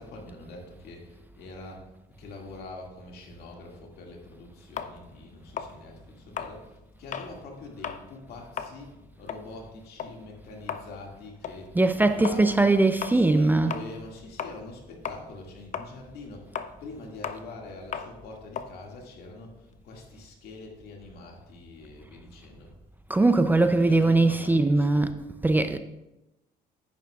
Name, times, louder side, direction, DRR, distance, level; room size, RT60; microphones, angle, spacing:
voice 1, 0.0-1.8 2.2-12.8 13.1-22.7 23.6-25.1, left 2 dB, 70° left, 2.1 m, -44 dB
sound 1, 4.8-7.4 7.7-8.1 8.4-14.8 15.0-19.8, left 7 dB, 45° left, 0.6 m, -37 dB
voice 2, 11.7-13.8 23.1-25.1 25.4-25.8, right 2 dB, 10° right, 0.4 m, -21 dB
10.5 x 9.4 x 2.4 m
cardioid pair, 110°, 17 cm